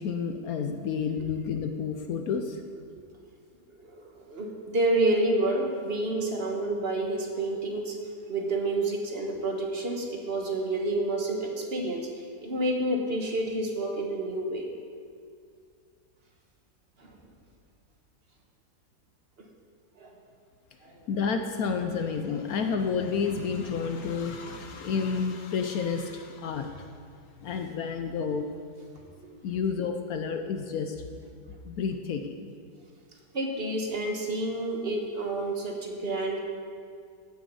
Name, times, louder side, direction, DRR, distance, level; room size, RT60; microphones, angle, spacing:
voice 1, 0.0-2.6 21.1-26.8 27.4-28.5 29.4-31.0 31.6-32.3, left 6 dB, 70° left, 6 dB, 1.1 m, -30 dB
voice 2, 3.8-8.0 8.3-12.1 12.4-14.7 17.0-17.2 20.0-20.1 20.8-20.9 33.3-36.4, right 2 dB, 40° right, 1 dB, 1.4 m, -29 dB
15.5 x 6.6 x 5.4 m, 2.2 s
omnidirectional pair, 1.8 m